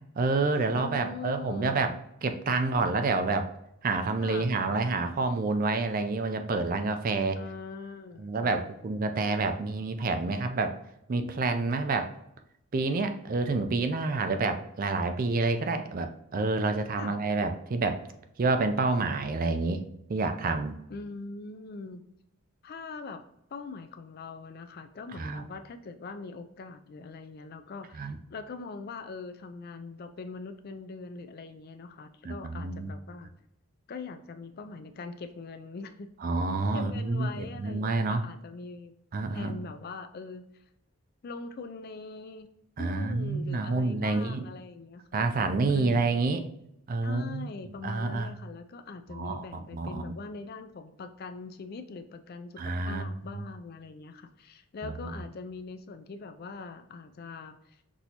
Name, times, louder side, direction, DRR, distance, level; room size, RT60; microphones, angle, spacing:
voice 1, 0.2-1.9 2.2-3.5 3.8-7.4 8.2-10.7 11.1-12.1 12.7-18.0 18.4-19.8 20.1-20.8 25.2-25.4 27.9-28.2 32.2-32.9 36.2-38.2 39.1-39.5 42.8-44.5 45.1-46.4 46.9-47.5 47.8-48.3 49.1-50.1 52.6-53.1 54.8-55.2, right 3 dB, 40° right, 8 dB, 0.4 m, -28 dB
voice 2, 0.7-1.9 4.2-4.5 7.4-8.7 17.0-17.2 20.9-22.1 22.6-23.2 23.5-33.3 33.9-36.1 36.7-38.9 39.3-40.4 41.2-42.5 42.8-45.0 45.7-46.1 47.0-57.8, left 4 dB, 45° left, 9 dB, 0.3 m, -42 dB
6.0 x 2.7 x 2.8 m, 0.81 s
head